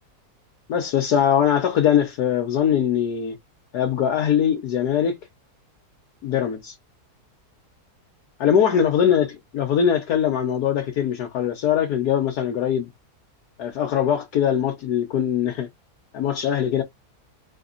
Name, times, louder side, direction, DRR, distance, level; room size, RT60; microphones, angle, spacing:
voice 1, 0.7-3.4 3.7-5.2 6.2-6.8 8.4-9.3 9.5-12.9 13.6-15.7 16.1-16.8, left 9 dB, 80° left, 1.4 m, -21 dB
3.7 x 3.5 x 3.9 m
omnidirectional pair, 1.7 m